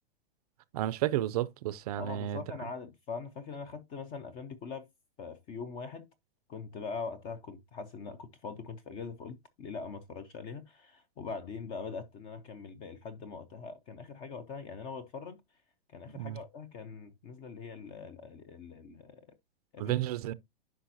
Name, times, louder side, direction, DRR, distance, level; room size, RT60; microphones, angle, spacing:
voice 1, 0.7-2.4 16.1-16.4 19.8-20.3, right 13 dB, 40° right, 0.5 m, -32 dB
voice 2, 2.0-4.9 5.2-6.1 6.5-15.4 15.9-19.2 19.7-20.0, left 5 dB, 15° left, 0.4 m, -42 dB
10.0 x 5.5 x 2.7 m
hypercardioid pair, 150°, 31 cm